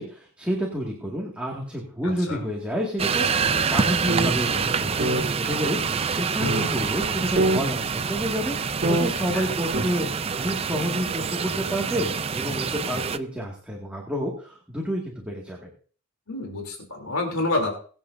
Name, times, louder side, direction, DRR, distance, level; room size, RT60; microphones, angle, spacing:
voice 1, 0.0-10.1 10.4-15.7, equal, 5° right, -3 dB, 2.1 m, -29 dB
voice 2, 2.0-2.4 9.3-9.5 16.3-17.8, left 2 dB, 75° left, 1 dB, 3.3 m, -28 dB
sound 1, 3.0-13.2, right 5 dB, 25° right, 0.4 m, -26 dB
sound 2, 4.1-4.3 4.6-4.7 5.0-5.2 5.9-6.0 6.4-6.7 7.0-7.1 7.4-7.6 8.2-8.3 8.8-9.1 9.7-9.8, right 1 dB, 45° right, 2.3 m, -23 dB
22.0 x 8.9 x 2.7 m, 0.42 s
head